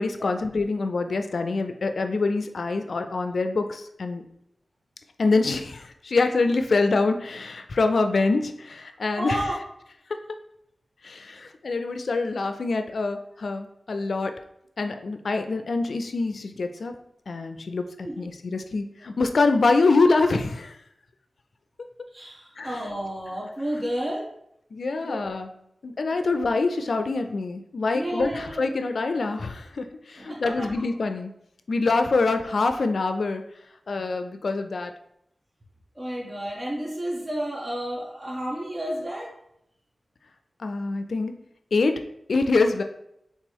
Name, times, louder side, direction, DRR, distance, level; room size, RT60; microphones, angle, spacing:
voice 1, 0.0-4.2 5.2-9.4 11.0-14.3 14.8-16.9 17.3-17.8 18.2-20.7 22.6-22.7 24.7-25.5 25.8-29.8 30.2-31.3 31.7-33.4 33.9-34.9 40.6-41.3 41.7-41.9 42.3-42.8, left 3 dB, 75° left, 7 dB, 0.4 m, -25 dB
voice 2, 9.2-9.6 18.0-18.2 22.1-24.3 25.0-25.3 27.9-28.6 30.2-30.7 34.0-34.1 36.0-39.3, right 1 dB, 35° right, -2 dB, 0.9 m, -31 dB
3.4 x 3.0 x 4.5 m, 0.77 s
wide cardioid pair, 65°, 0 cm